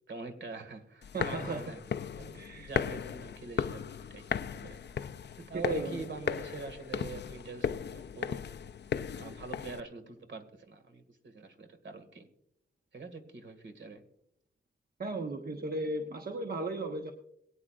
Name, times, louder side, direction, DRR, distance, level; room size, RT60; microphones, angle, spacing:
voice 1, 0.1-1.8 2.2-4.8 5.4-8.4 9.2-12.3 12.9-14.0, right 4 dB, 70° right, 7 dB, 1.9 m, -44 dB
sound 1, 1.0-9.8, left 7 dB, 60° left, 0.5 m, -36 dB
voice 2, 1.1-1.6 2.3-2.7 5.5-6.0 15.0-17.1, right 2 dB, 50° right, 3 dB, 1.1 m, -35 dB
22.5 x 8.9 x 2.5 m, 0.73 s
wide cardioid pair, 100°, 20 cm